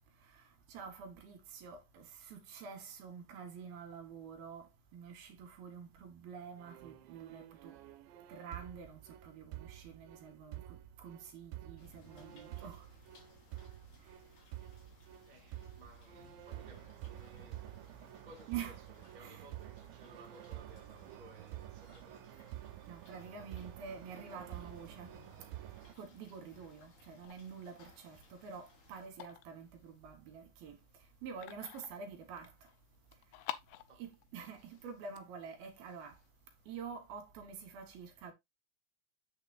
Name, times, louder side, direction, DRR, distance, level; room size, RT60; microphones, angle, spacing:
voice 1, 0.3-7.7 8.3-12.9 18.5-18.7 19.2-19.5 22.9-25.1 26.0-30.8 31.2-32.5 34.0-36.2 36.7-38.3, right 6 dB, 65° right, 2.9 m, -48 dB
sound 1, 6.6-26.0, right 14 dB, 85° right, 2.9 m, -50 dB
sound 2, 11.8-29.1, left 3 dB, 45° left, 3.6 m, -63 dB
voice 2, 15.3-22.6 30.9-31.0 33.9-34.0, right 2 dB, 45° right, 0.5 m, -59 dB
sound 3, 27.2-36.6, left 14 dB, 85° left, 3.1 m, -52 dB
8.3 x 6.8 x 2.6 m
omnidirectional pair, 5.3 m